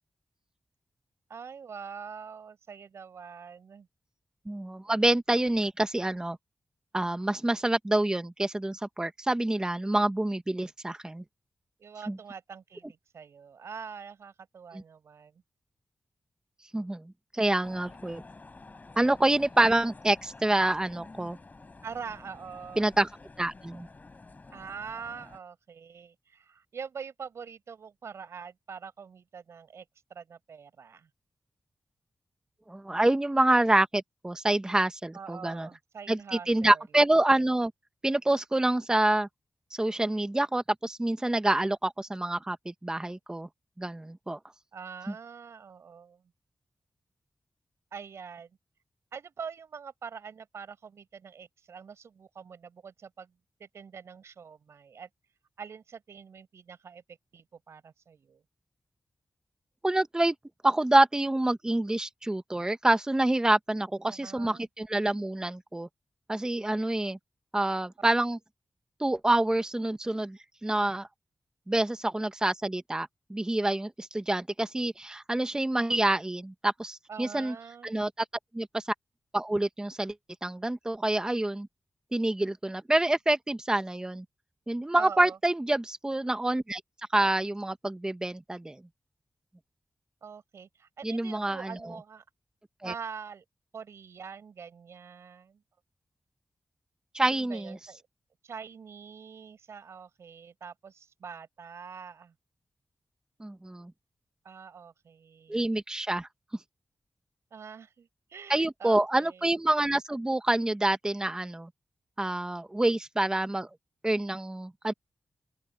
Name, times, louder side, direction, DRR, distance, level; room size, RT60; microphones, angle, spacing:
voice 1, 1.3-3.9 11.8-15.4 21.8-23.0 24.5-29.8 30.1-31.1 35.1-36.8 44.7-46.2 47.9-48.5 49.1-53.3 53.6-55.1 55.6-58.4 64.1-64.7 77.1-77.9 85.0-85.4 90.2-92.2 92.8-93.4 93.7-95.6 97.3-98.0 98.4-102.3 104.4-105.7 107.5-109.6, right 6 dB, 85° right, 6.1 m, -44 dB
voice 2, 4.5-6.4 6.9-11.2 12.1-12.2 16.7-17.0 17.3-18.2 19.0-21.4 22.8-23.1 23.4-23.9 32.7-35.7 36.1-36.2 36.5-37.7 38.0-39.3 39.7-43.5 43.8-44.4 59.8-60.3 60.6-65.9 66.3-67.2 67.5-68.4 69.0-71.1 71.7-77.5 77.8-78.1 78.5-78.9 79.3-80.1 80.4-81.7 82.1-84.2 84.7-86.8 87.1-88.8 91.0-91.7 92.8-92.9 97.1-97.8 103.4-103.9 105.5-106.3 108.5-111.7 112.2-113.7 114.0-114.9, right 1 dB, 15° right, 1.0 m, -27 dB
sound 1, 17.6-25.4, left 3 dB, 40° left, 4.9 m, -50 dB
open air
wide cardioid pair, 85°, 5 cm